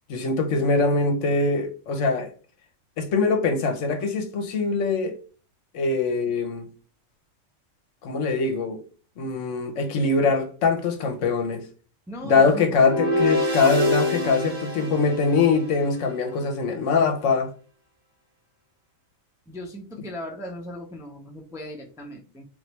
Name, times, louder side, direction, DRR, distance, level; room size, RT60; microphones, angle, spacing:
voice 1, 0.1-2.3 3.0-5.2 5.7-6.7 8.0-8.8 9.2-11.6 12.2-17.5, left 4 dB, 70° left, 1.0 m, -23 dB
voice 2, 12.1-13.2 19.5-22.5, equal, 5° right, 0.5 m, -38 dB
sound 1, 12.7-16.0, left 1 dB, 85° right, 1.7 m, -26 dB
3.8 x 3.2 x 3.0 m
omnidirectional pair, 1.4 m